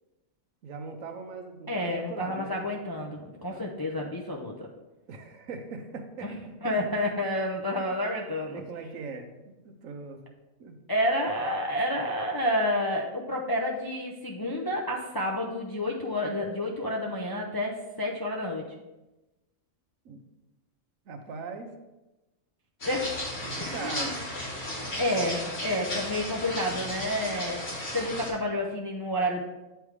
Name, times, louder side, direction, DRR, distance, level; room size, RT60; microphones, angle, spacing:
voice 1, 0.6-2.6 3.5-3.6 5.1-6.3 8.5-10.2 10.6-10.8 20.0-20.2 21.1-21.8 23.4-24.1, right 4 dB, 80° right, 5 dB, 1.2 m, -40 dB
voice 2, 1.7-4.7 6.2-6.3 6.6-8.6 10.9-18.7 22.8-23.2 23.6-24.1 25.0-27.6 27.9-29.4, left 1 dB, 30° left, -1 dB, 0.4 m, -29 dB
sound 1, 22.8-28.3, left 1 dB, 65° left, 2.2 m, -35 dB
7.9 x 3.4 x 4.7 m, 1.0 s
omnidirectional pair, 1.4 m